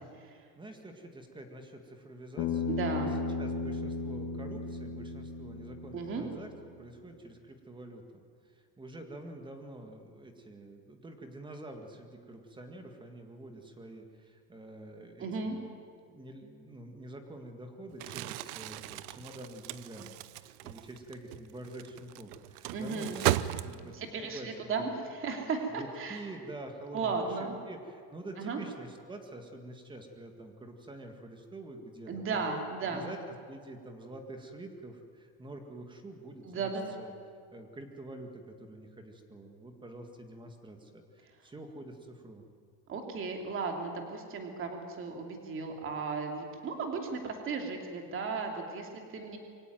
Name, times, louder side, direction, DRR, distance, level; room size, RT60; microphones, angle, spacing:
voice 1, 0.2-3.1 3.4-6.5 6.8-15.7 16.1-24.0 24.2-24.8 25.8-32.4 32.8-36.7 37.0-37.1 37.5-42.4, right 2 dB, 10° right, 5 dB, 1.9 m, -47 dB
Bass guitar, 2.4-6.7, left 4 dB, 45° left, 2.6 m, -35 dB
voice 2, 2.7-3.2 5.9-6.2 15.2-15.6 22.7-23.2 23.9-26.2 26.9-27.6 28.4-28.6 32.1-33.1 36.5-37.0 42.9-49.4, right 4 dB, 25° right, 3 dB, 2.9 m, -35 dB
Crumpling crinkling, 17.9-24.1, right 15 dB, 70° right, 0.9 m, -36 dB
24.0 x 17.0 x 9.3 m, 2.3 s
cardioid pair, 170°, 46 cm